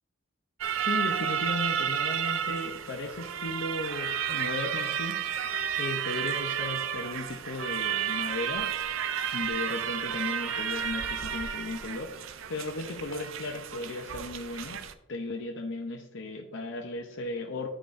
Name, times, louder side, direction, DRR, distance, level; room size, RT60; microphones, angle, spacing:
sound 1, 0.6-14.9, right 8 dB, 70° right, 0.4 m, -32 dB
voice 1, 0.8-8.7 9.3-12.1 12.5-14.8 15.1-17.7, left 2 dB, 60° left, 3 dB, 0.6 m, -36 dB
10.0 x 4.9 x 2.6 m, 0.99 s
head